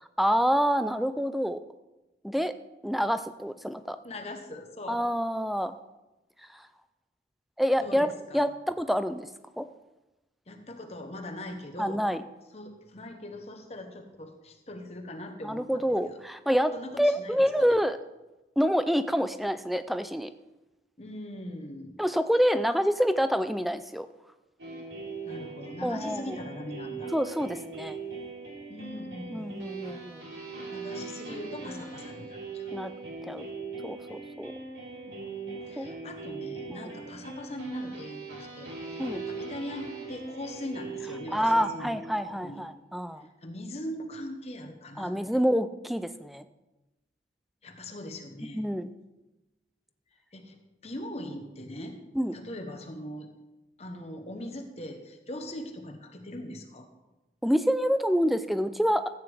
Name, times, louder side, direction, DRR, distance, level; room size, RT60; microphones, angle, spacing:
voice 1, 0.2-1.6 2.2-2.5 2.8-4.0 4.9-5.7 6.5-6.7 7.6-8.1 8.3-9.3 9.6-9.7 11.8-12.2 15.4-18.0 18.6-20.3 22.0-24.1 25.8-26.4 27.1-28.0 29.3-30.2 32.7-32.9 33.3-33.5 33.8-34.5 35.8-35.9 36.8-36.9 39.0-39.2 41.3-43.3 45.0-46.5 48.5-48.9 52.1-52.4 57.4-59.0, equal, ahead, 11 dB, 0.4 m, -27 dB
voice 2, 4.0-5.1 7.8-8.5 10.5-12.0 12.5-16.2 16.7-17.8 21.0-22.0 25.2-27.1 28.7-29.6 29.8-30.0 30.7-32.7 33.4-33.5 35.1-42.0 42.3-42.6 43.4-45.4 47.6-48.6 50.3-52.0 52.3-53.3 53.8-56.9, left 1 dB, 35° left, 5 dB, 1.0 m, -41 dB
sound 1, 24.6-42.4, right 4 dB, 75° right, 3.0 m, -40 dB
14.0 x 9.0 x 3.4 m, 1.0 s
head